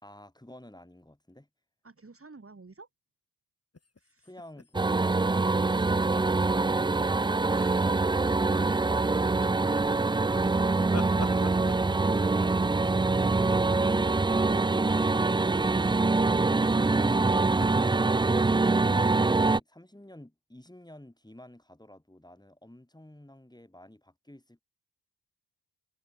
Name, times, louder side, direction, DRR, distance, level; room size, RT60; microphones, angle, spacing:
voice 1, 0.0-1.5 4.2-7.2 18.9-24.6, left 1 dB, 10° left, 3.8 m, -51 dB
voice 2, 1.8-2.9 4.0-4.4, right 3 dB, 30° right, 3.7 m, -52 dB
sound 1, 3.7-6.4 6.7-7.0 7.2-8.1 8.5-9.1 9.7-14.0 14.9-15.4 16.2-16.9 17.6-17.7, left 3 dB, 35° left, 4.6 m, -46 dB
sound 2, 4.7-19.6, right 3 dB, 10° right, 0.5 m, -24 dB
supercardioid pair, 45°, 43 cm